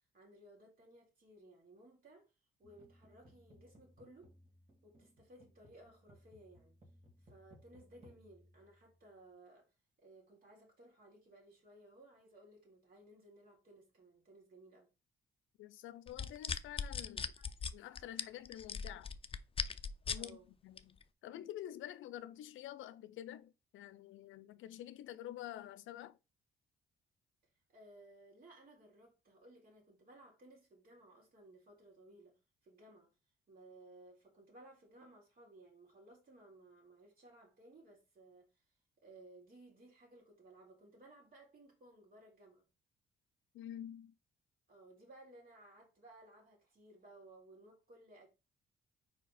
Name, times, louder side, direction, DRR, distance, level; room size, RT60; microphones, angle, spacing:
voice 1, 0.1-2.3 2.6-4.3 4.8-6.8 7.2-9.7 10.0-14.9 17.4-17.5 20.1-20.5 27.7-32.4 32.6-33.1 33.5-38.5 39.0-42.7 44.7-48.3, right 1 dB, 50° right, 3.8 m, -60 dB
sound 1, 2.6-9.3, equal, 30° right, 2.4 m, -64 dB
voice 2, 15.6-17.3 17.7-19.1 20.1-20.4 20.6-21.0 21.2-26.2 43.5-44.1, left 12 dB, 80° left, 0.5 m, -48 dB
sound 2, 16.1-20.3 20.8-21.0, left 6 dB, 30° left, 0.5 m, -39 dB
4.9 x 4.7 x 4.2 m
cardioid pair, 90°, 20 cm